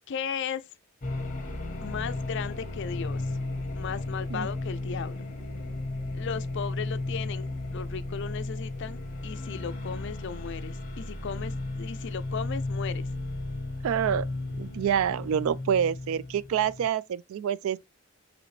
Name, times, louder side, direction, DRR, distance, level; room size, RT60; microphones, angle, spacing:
voice 1, 0.1-0.6 1.8-3.2 3.7-5.3 6.1-13.1, left 6 dB, 55° left, 0.4 m, -36 dB
sound 1, 1.0-16.9, left 2 dB, 40° left, 1.1 m, -34 dB
voice 2, 13.8-14.3 14.6-17.8, right 8 dB, 70° right, 0.3 m, -27 dB
4.9 x 3.2 x 3.2 m
head